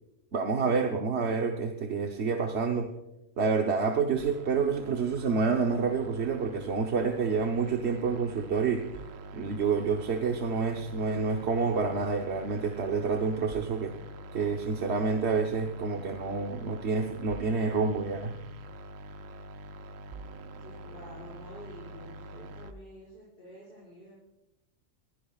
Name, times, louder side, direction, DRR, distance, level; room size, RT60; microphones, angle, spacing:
voice 1, 0.3-2.9 3.4-8.8 9.3-13.9 14.3-18.4, right 5 dB, 60° right, 3 dB, 1.2 m, -28 dB
sound 1, 4.2-22.7, right 1 dB, 85° right, 1.2 m, -45 dB
voice 2, 20.6-24.2, equal, 45° left, -8 dB, 5.8 m, -49 dB
22.0 x 16.0 x 2.4 m, 0.93 s
omnidirectional pair, 1.3 m